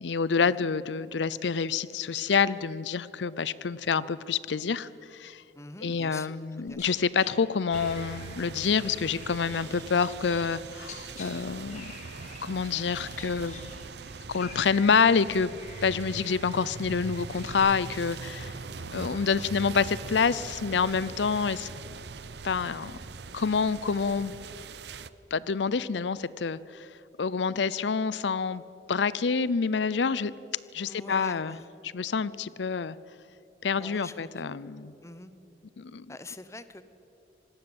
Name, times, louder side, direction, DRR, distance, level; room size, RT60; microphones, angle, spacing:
voice 1, 0.0-5.4 5.8-11.9 12.4-13.6 14.3-15.6 15.8-18.5 18.9-21.7 22.4-23.0 23.3-24.3 25.3-26.9 27.2-28.6 28.9-30.3 30.7-31.6 31.9-33.0 33.6-34.9 35.8-36.1, left 5 dB, 90° left, 18 dB, 0.6 m, -27 dB
voice 2, 5.6-6.3 6.7-7.0 18.7-18.9 30.9-31.7 33.8-34.6 35.0-35.3 36.1-36.8, left 2 dB, 15° left, 12 dB, 0.9 m, -45 dB
sound 1, 6.7-7.3 7.7-10.6 10.8-11.3 11.7-12.4 12.7-17.5, left 4 dB, 45° left, 4.3 m, -48 dB
sound 2, 7.7-25.1, right 4 dB, 70° right, 0.8 m, -41 dB
26.0 x 19.0 x 8.0 m, 2.9 s
head